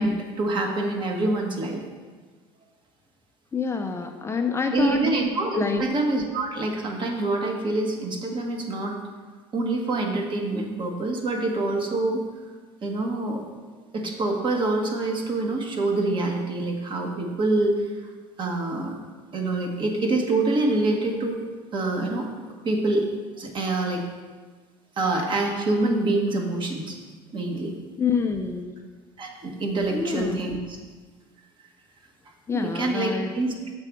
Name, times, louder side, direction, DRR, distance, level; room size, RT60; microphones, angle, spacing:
voice 1, 0.0-1.8 4.7-9.0 9.5-12.2 12.8-13.4 13.9-17.7 18.4-18.9 19.3-21.4 21.7-22.3 22.6-23.1 23.4-24.0 25.0-27.0 27.3-27.7 29.2-30.8 32.5-33.5, right 2 dB, 40° right, 2 dB, 1.3 m, -26 dB
voice 2, 3.5-5.0 5.5-5.8 28.0-28.8 29.9-30.4 32.5-33.3, left 5 dB, 20° left, 4 dB, 0.5 m, -27 dB
6.8 x 3.4 x 6.0 m, 1.4 s
supercardioid pair, 90°, 13 cm